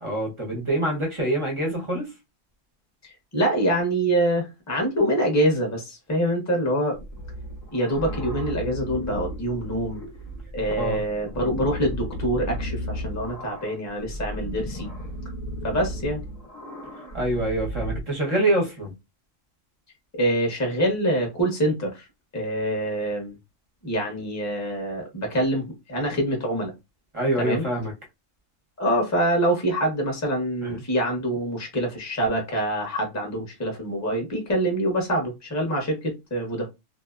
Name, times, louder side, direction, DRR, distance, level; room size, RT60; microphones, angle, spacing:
voice 1, 0.0-2.1 10.8-11.0 17.1-18.9 27.1-27.9 30.6-30.8, right 1 dB, 30° right, 0.6 m, -25 dB
voice 2, 3.0-7.0 7.7-10.0 10.5-14.9 15.6-16.2 20.1-22.1 22.3-23.4 23.8-26.7 27.4-27.6 28.8-36.7, right 1 dB, 15° left, 0.6 m, -25 dB
sound 1, 6.9-18.0, equal, 60° left, 0.4 m, -34 dB
2.7 x 2.0 x 2.4 m
omnidirectional pair, 1.6 m